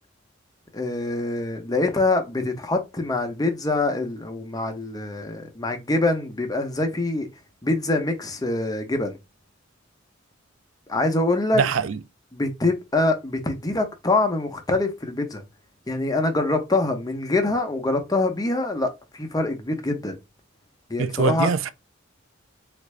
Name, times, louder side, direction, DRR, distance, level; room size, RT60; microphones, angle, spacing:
voice 1, 0.7-7.3 7.6-9.2 10.9-11.7 12.3-15.4 15.9-18.9 19.1-20.2 20.9-21.5, left 2 dB, 20° left, 0.7 m, -24 dB
voice 2, 11.5-12.0 21.0-21.7, right 5 dB, 90° right, 0.4 m, -23 dB
3.5 x 2.5 x 3.1 m
head